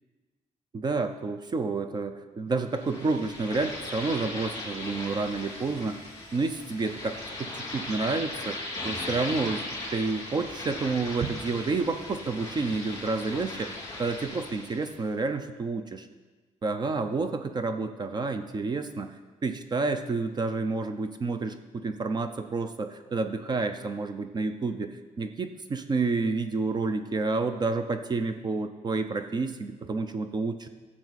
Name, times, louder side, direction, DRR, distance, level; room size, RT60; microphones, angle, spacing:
voice 1, 0.7-6.0 6.3-8.6 8.8-9.6 9.9-13.7 14.0-16.1 16.6-19.1 19.4-30.7, right 3 dB, 30° right, 8 dB, 0.6 m, -29 dB
sound 1, 2.7-15.0, left 2 dB, 25° left, 3.3 m, -38 dB
13.5 x 7.3 x 4.1 m, 1.3 s
cardioid pair, 140°, 13 cm